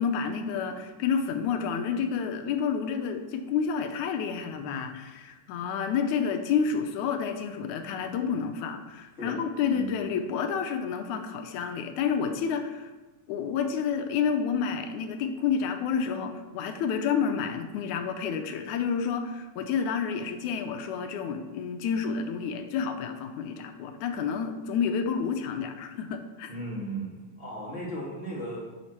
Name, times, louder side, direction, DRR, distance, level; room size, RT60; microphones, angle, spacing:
voice 1, 0.0-12.9 13.3-26.5, left 6 dB, 80° left, 6 dB, 2.0 m, -29 dB
voice 2, 26.5-28.7, right 1 dB, 25° left, -6 dB, 2.2 m, -36 dB
7.5 x 7.3 x 4.4 m, 1.2 s
omnidirectional pair, 3.5 m